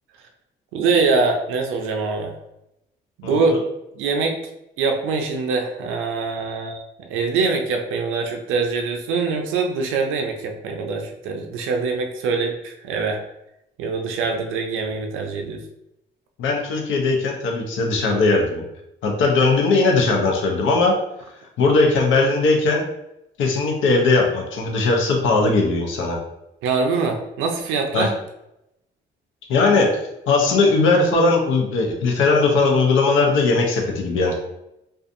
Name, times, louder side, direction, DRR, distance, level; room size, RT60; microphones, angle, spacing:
voice 1, 0.7-2.3 3.2-3.5 4.0-4.4 4.8-13.2 13.8-15.6 26.6-28.2, right 4 dB, 90° right, 3 dB, 0.4 m, -23 dB
voice 2, 3.2-3.6 16.4-18.6 19.0-21.0 21.6-22.8 23.4-26.2 27.9-28.1 29.5-30.0 30.3-34.4, left 3 dB, 80° left, 1 dB, 0.6 m, -19 dB
2.5 x 2.3 x 2.5 m, 0.85 s
cardioid pair, 90°, 20 cm